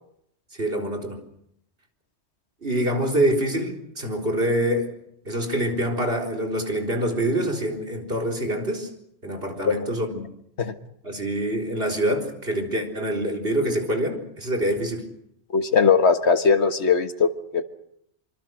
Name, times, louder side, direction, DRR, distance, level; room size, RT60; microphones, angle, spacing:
voice 1, 0.6-1.2 2.6-4.9 5.2-8.9 9.2-10.3 11.0-15.1, right 1 dB, 60° right, 2 dB, 4.3 m, -25 dB
voice 2, 15.5-17.6, left 5 dB, 80° left, 9 dB, 1.9 m, -20 dB
25.5 x 25.5 x 6.3 m, 0.73 s
omnidirectional pair, 1.1 m